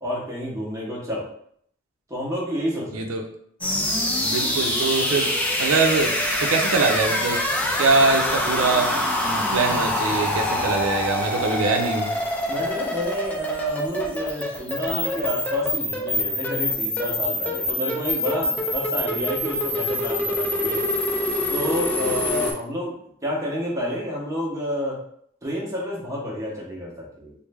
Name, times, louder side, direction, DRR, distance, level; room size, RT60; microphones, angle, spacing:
voice 1, 0.0-1.2 2.1-3.0 12.5-20.8 21.5-23.0 23.2-25.0 25.4-27.3, equal, 15° right, -4 dB, 0.8 m, -29 dB
voice 2, 2.9-3.2 4.2-5.3 5.6-6.1 6.4-7.4 7.8-8.9 9.3-12.2, right 3 dB, 85° right, 3 dB, 0.5 m, -23 dB
sound 1, 3.6-22.5, left 1 dB, 5° left, 0.4 m, -25 dB
3.2 x 2.1 x 3.3 m, 0.66 s
head